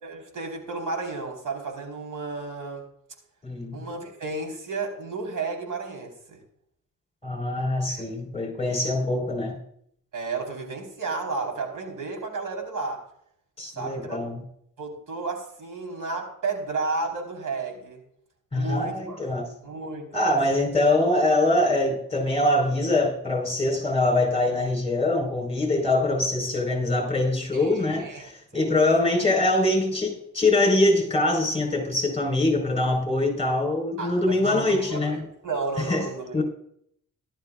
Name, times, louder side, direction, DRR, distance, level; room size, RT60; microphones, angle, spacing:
voice 1, 0.0-2.9 3.7-6.4 7.9-8.1 8.8-8.9 10.1-13.1 13.8-14.2 14.8-18.0 18.5-19.2 19.6-20.6 27.5-28.8 34.0-36.4, right 3 dB, 70° right, 3 dB, 4.5 m, -33 dB
voice 2, 3.4-3.8 7.2-9.6 13.6-14.4 18.5-19.5 20.1-35.2 35.8-36.1 36.3-36.4, left 2 dB, 20° left, 2 dB, 4.7 m, -23 dB
17.5 x 13.0 x 2.5 m, 0.68 s
wide cardioid pair, 115°, 32 cm